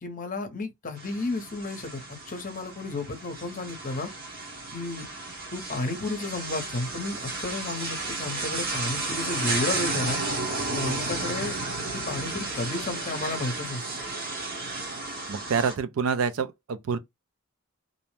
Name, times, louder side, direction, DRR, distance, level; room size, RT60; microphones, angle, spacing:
voice 1, 0.0-4.1 4.7-5.1 5.5-10.2 10.7-11.6 11.9-13.8, left 2 dB, 40° left, 0.7 m, -32 dB
sound 1, 1.0-15.8, right 3 dB, 45° right, 0.9 m, -33 dB
voice 2, 15.3-17.0, right 5 dB, 70° right, 0.4 m, -27 dB
2.6 x 2.0 x 3.0 m
head